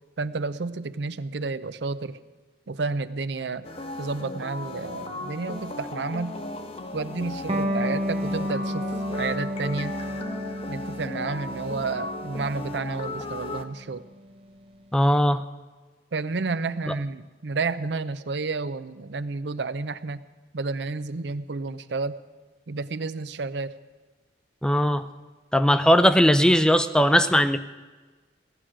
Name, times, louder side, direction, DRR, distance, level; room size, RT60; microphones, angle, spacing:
voice 1, 0.2-2.2 2.7-3.7 4.0-6.4 6.9-9.9 10.7-14.0 16.1-20.2 20.5-22.2 22.7-23.7, right 3 dB, 75° right, 14 dB, 0.6 m, -31 dB
sound 1, 3.6-13.6, left 2 dB, 35° left, 0.9 m, -36 dB
Electric guitar, 7.5-14.6, equal, 30° right, 0.9 m, -32 dB
voice 2, 14.9-15.4 24.6-25.0 25.5-27.6, equal, 5° left, 12 dB, 0.4 m, -19 dB
16.5 x 6.4 x 9.9 m, 1.3 s
head